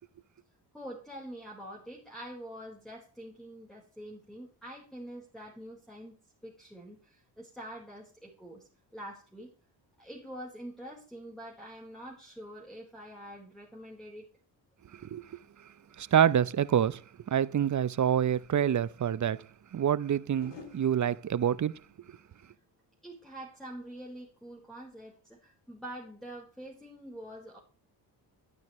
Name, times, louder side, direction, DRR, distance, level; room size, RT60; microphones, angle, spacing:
voice 1, 0.7-8.7 8.9-9.5 10.0-14.3 23.0-27.6, right 1 dB, ahead, 4.3 m, -45 dB
voice 2, 16.0-17.0 17.3-19.4 19.7-21.8, right 9 dB, 40° right, 0.7 m, -27 dB
sound 1, 20.4-23.5 23.8-24.3, left 4 dB, 70° left, 3.7 m, -54 dB
13.0 x 9.3 x 3.1 m
cardioid pair, 70°, 44 cm